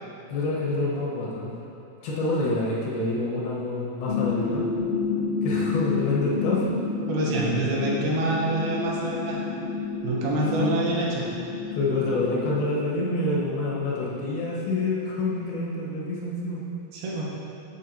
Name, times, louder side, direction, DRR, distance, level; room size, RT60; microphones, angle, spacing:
voice 1, 0.3-1.5 2.0-4.7 5.4-6.7 10.6-10.8 11.7-16.6, left 2 dB, 85° left, -5 dB, 3.3 m, -27 dB
sound 1, 4.0-14.5, left 4 dB, 35° left, 1.0 m, -30 dB
voice 2, 7.1-9.4 10.0-11.2 16.9-17.3, right 2 dB, 80° right, -4 dB, 3.1 m, -26 dB
8.4 x 8.1 x 2.9 m, 2.7 s
omnidirectional pair, 4.3 m